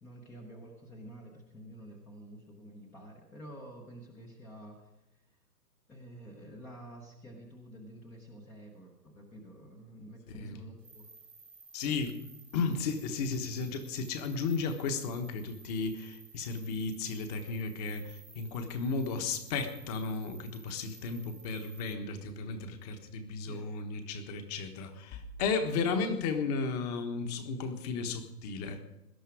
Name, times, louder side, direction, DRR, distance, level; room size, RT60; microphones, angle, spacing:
voice 1, 0.0-5.2 5.9-11.1 23.4-23.7, right 1 dB, 5° left, 1 dB, 0.8 m, -49 dB
voice 2, 10.3-10.6 11.7-12.2 12.5-28.8, left 4 dB, 25° left, 7 dB, 1.3 m, -34 dB
sound 1, 10.8-21.9, right 4 dB, 90° right, 3.4 m, -55 dB
18.0 x 11.5 x 4.9 m, 1.0 s
hypercardioid pair, 150°, 49 cm